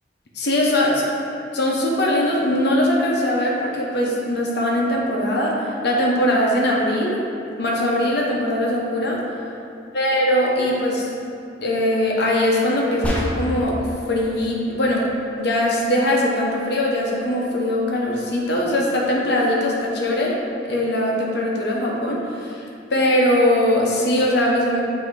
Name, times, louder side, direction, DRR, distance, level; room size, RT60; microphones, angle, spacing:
voice 1, 0.3-1.0 1.5-7.2 7.6-9.2 9.9-11.1 11.6-13.8 14.1-15.1 15.4-24.8, left 1 dB, 65° left, -3 dB, 1.0 m, -21 dB
sound 1, 13.0-13.8, equal, 10° left, 0.7 m, -25 dB
8.0 x 3.0 x 4.8 m, 2.6 s
head